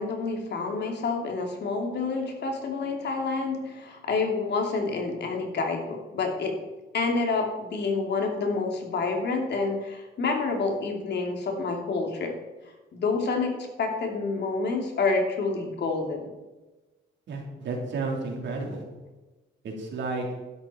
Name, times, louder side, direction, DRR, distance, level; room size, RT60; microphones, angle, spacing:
voice 1, 0.0-6.5 6.9-12.3 12.9-16.2, left 4 dB, 60° left, 2 dB, 2.7 m, -28 dB
voice 2, 17.3-18.8 19.6-20.3, right 3 dB, 65° right, -1 dB, 3.5 m, -32 dB
12.0 x 11.0 x 4.3 m, 1.1 s
cardioid pair, 90°, 20 cm